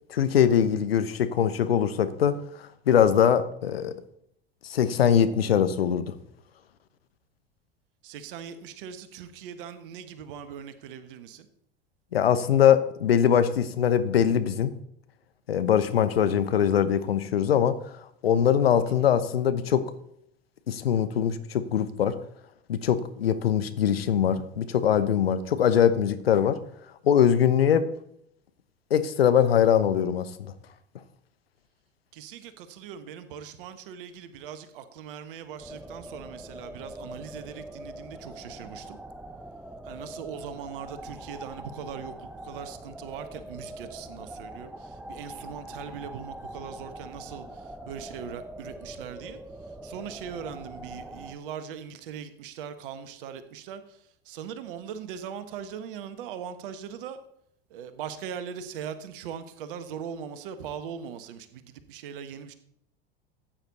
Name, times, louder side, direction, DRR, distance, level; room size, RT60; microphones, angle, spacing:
voice 1, 0.1-3.9 4.6-6.1 12.1-14.7 15.5-17.8 18.2-19.9 20.7-22.2 22.7-26.6 27.0-27.8 28.9-30.5, left 9 dB, 70° left, 12 dB, 1.0 m, -22 dB
voice 2, 8.0-11.5 18.9-19.1 32.1-39.0 39.8-49.4 49.8-57.2 57.7-62.5, right 8 dB, 60° right, 11 dB, 1.4 m, -40 dB
sound 1, 35.6-51.4, right 1 dB, 5° right, 0.9 m, -43 dB
14.5 x 8.9 x 4.0 m, 0.73 s
figure-of-eight pair, 75°, 31 cm